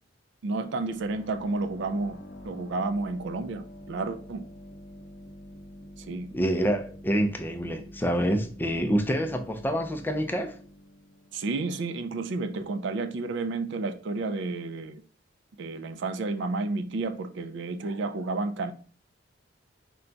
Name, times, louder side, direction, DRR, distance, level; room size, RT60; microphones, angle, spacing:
voice 1, 0.4-2.2 2.4-4.4 6.0-6.3 11.3-15.0 15.6-18.7, right 3 dB, 65° right, 0.4 m, -31 dB
sound 1, 0.6-12.1, equal, 50° left, 0.6 m, -47 dB
voice 2, 6.3-10.5, equal, 10° left, 0.4 m, -27 dB
4.5 x 2.2 x 3.8 m
head